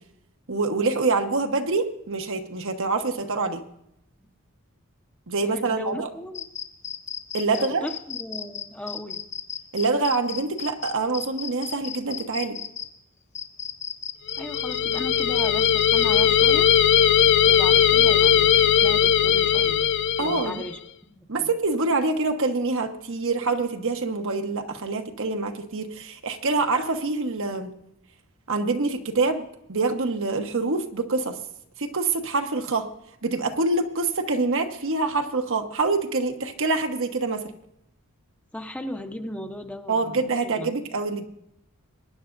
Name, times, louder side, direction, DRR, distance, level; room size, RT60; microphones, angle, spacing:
voice 1, 0.5-3.6 5.3-6.1 7.3-7.9 9.7-12.6 20.2-20.6 21.3-27.7 28.5-31.4 31.8-32.9 33.2-37.4 39.9-41.2, right 3 dB, 65° right, 5 dB, 1.1 m, -25 dB
voice 2, 5.4-6.5 7.5-9.2 14.4-16.7 17.5-19.9 20.2-20.8 21.1-21.5 38.5-40.8, left 1 dB, 5° left, 4 dB, 0.8 m, -37 dB
sound 1, 6.3-12.9 13.3-16.4, left 7 dB, 35° left, 0.9 m, -34 dB
sound 2, 14.3-20.7, left 9 dB, 55° left, 0.5 m, -19 dB
22.5 x 10.0 x 2.6 m, 0.77 s
head